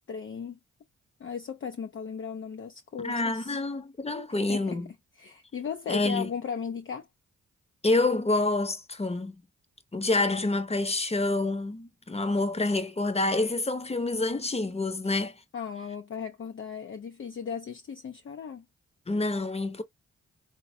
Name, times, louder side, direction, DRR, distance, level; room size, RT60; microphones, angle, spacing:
voice 1, 0.1-0.6 1.2-3.6 4.3-4.8 5.2-7.1 15.5-18.7, left 6 dB, 40° left, 0.5 m, -36 dB
voice 2, 3.0-4.9 5.9-6.3 7.8-9.4 9.9-15.4 19.1-19.8, left 2 dB, 20° left, 0.8 m, -27 dB
3.8 x 2.2 x 2.6 m
supercardioid pair, 45°, 32 cm